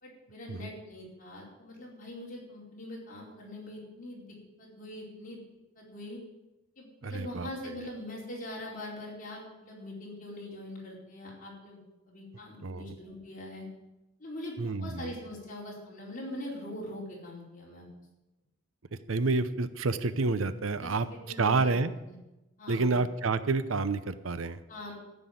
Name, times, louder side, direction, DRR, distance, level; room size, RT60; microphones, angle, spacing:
voice 1, 0.0-5.4 5.8-6.2 6.8-11.8 12.1-13.6 14.2-17.9 20.8-21.7 22.0-22.2 22.6-22.9 24.7-24.9, left 1 dB, 45° left, -3 dB, 4.6 m, -42 dB
voice 2, 7.0-7.5 12.6-13.0 14.6-15.1 18.9-21.1 21.4-21.9 22.7-24.6, right 3 dB, 85° right, 13 dB, 0.8 m, -29 dB
14.0 x 6.2 x 9.3 m, 0.98 s
head